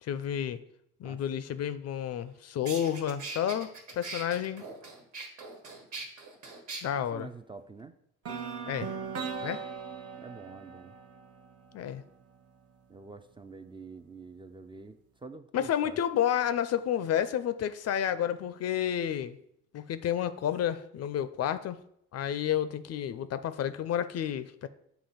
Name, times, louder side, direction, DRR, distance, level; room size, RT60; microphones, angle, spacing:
voice 1, 0.0-0.6 1.0-4.6 6.8-7.3 8.7-8.9 9.4-9.6 11.7-12.0 15.5-19.4 19.7-21.8 22.1-24.7, left 10 dB, 55° left, 13 dB, 0.5 m, -30 dB
voice 2, 1.0-1.5 7.0-7.9 10.2-10.9 12.9-16.0, right 4 dB, 15° right, 8 dB, 0.3 m, -47 dB
sound 1, 2.2-2.3 2.7-6.8, right 3 dB, 75° right, 1.5 m, -41 dB
sound 2, 8.2-12.2, right 5 dB, 50° right, 0.8 m, -39 dB
7.0 x 2.9 x 5.6 m, 0.75 s
cardioid pair, 90°, 30 cm